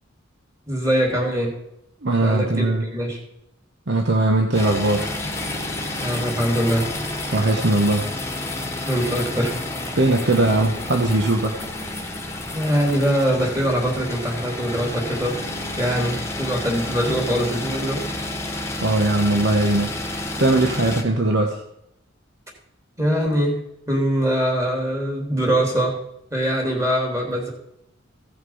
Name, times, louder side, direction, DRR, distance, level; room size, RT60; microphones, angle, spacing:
voice 1, 0.7-1.6 2.2-3.2 6.0-6.9 8.9-9.6 12.5-15.4 15.8-18.1 23.0-26.0 26.3-27.5, equal, 15° right, 0 dB, 3.0 m, -23 dB
voice 2, 2.0-2.9 3.9-5.2 7.3-8.1 10.0-11.6 18.8-19.9 20.4-21.6, right 2 dB, 60° right, 2 dB, 1.1 m, -20 dB
sound 1, 4.5-21.0, left 1 dB, 15° left, 1.5 m, -30 dB
16.0 x 5.9 x 5.6 m, 0.79 s
head